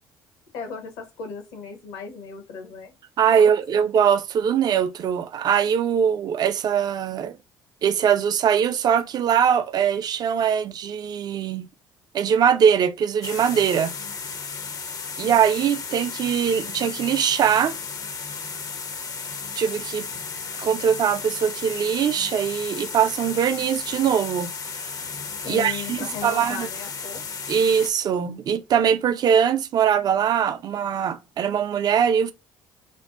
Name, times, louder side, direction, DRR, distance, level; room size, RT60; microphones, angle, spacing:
voice 1, 0.5-2.9 3.3-3.9 25.4-27.2, left 5 dB, 70° left, 0.8 m, -37 dB
voice 2, 3.2-7.4 7.8-11.7 12.1-13.9 15.2-17.8 19.6-20.1 20.6-24.5 25.4-26.7 27.5-32.3, right 8 dB, 40° right, 0.3 m, -21 dB
sound 1, 13.2-27.9, left 5 dB, 35° left, 0.5 m, -34 dB
2.5 x 2.1 x 2.3 m
hypercardioid pair, 55°, 10 cm